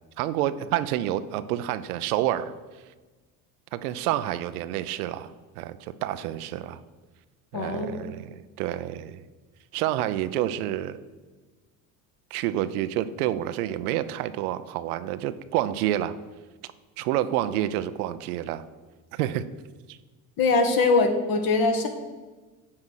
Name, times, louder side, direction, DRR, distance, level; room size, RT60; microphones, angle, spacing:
voice 1, 0.2-2.5 3.7-5.3 5.6-6.8 7.5-9.2 9.7-11.0 12.3-16.1 17.0-18.6 19.1-19.4 19.9-20.0, right 13 dB, 85° right, 13 dB, 0.6 m, -28 dB
voice 2, 7.5-7.9 20.4-21.9, left 3 dB, 55° left, 6 dB, 1.5 m, -22 dB
9.8 x 3.8 x 6.3 m, 1.3 s
hypercardioid pair, 80°, 43 cm